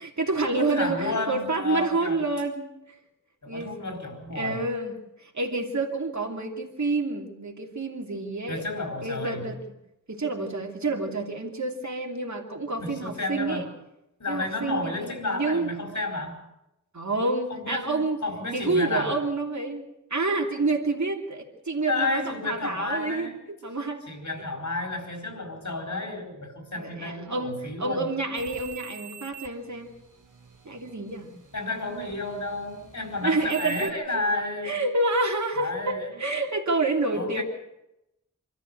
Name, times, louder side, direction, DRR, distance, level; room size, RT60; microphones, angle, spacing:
voice 1, 0.0-2.7 3.5-3.8 4.3-4.9 5.2-8.7 9.0-9.6 10.1-13.6 14.3-15.7 16.9-18.2 18.5-23.3 23.6-24.0 26.8-29.9 30.6-31.3 31.9-32.0 33.2-34.2 34.6-37.4, right 3 dB, 60° right, 2 dB, 2.9 m, -28 dB
voice 2, 0.5-2.2 3.4-4.6 8.5-9.5 12.8-13.7 14.2-16.4 17.5-19.2 21.9-23.4 24.1-28.1 31.5-34.8 35.6-36.2 37.1-37.4, left 2 dB, 65° left, 4 dB, 4.7 m, -31 dB
sound 1, 28.3-33.9, right 10 dB, 80° right, 1.5 m, -45 dB
25.0 x 13.5 x 8.0 m, 0.87 s
wide cardioid pair, 75°, 31 cm